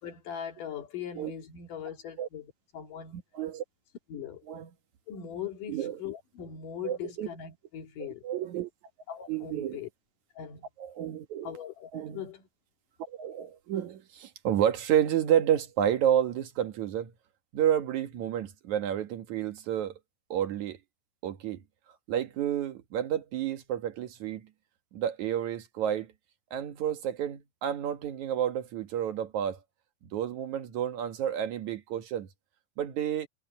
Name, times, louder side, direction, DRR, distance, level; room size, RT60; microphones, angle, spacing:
voice 1, 0.0-3.2 4.1-4.5 5.1-8.2 9.1-9.9 10.4-10.7 11.4-12.5, left 9 dB, 80° left, 3.9 m, -40 dB
voice 2, 3.1-3.6 4.5-4.7 5.7-6.0 6.8-7.3 8.0-8.7 9.3-9.9 10.8-11.5 11.9-12.3 13.1-17.1 17.5-19.9 20.3-20.8 21.2-21.6 22.1-24.5 24.9-26.1 26.5-29.6 30.1-32.3 32.8-33.3, right 10 dB, 65° right, 2.7 m, -30 dB
omnidirectional pair, 3.7 m